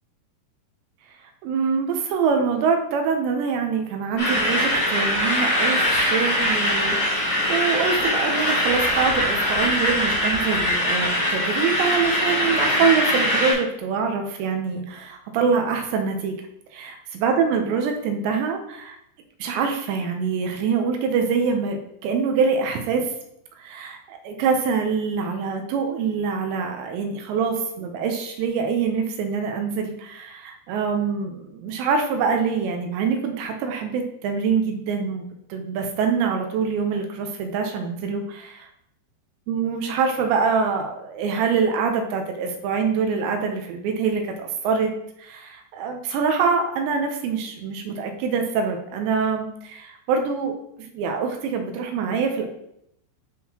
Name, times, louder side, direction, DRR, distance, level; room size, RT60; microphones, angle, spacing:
voice 1, 1.4-16.4 16.7-19.0 19.4-23.1 23.6-35.2 35.5-38.7 39.5-44.9 45.2-50.5 50.8-52.5, right 5 dB, 80° right, 4 dB, 2.8 m, -25 dB
sound 1, 4.2-13.5, left 1 dB, 30° left, 2.0 m, -22 dB
10.0 x 3.8 x 2.8 m, 0.76 s
omnidirectional pair, 5.4 m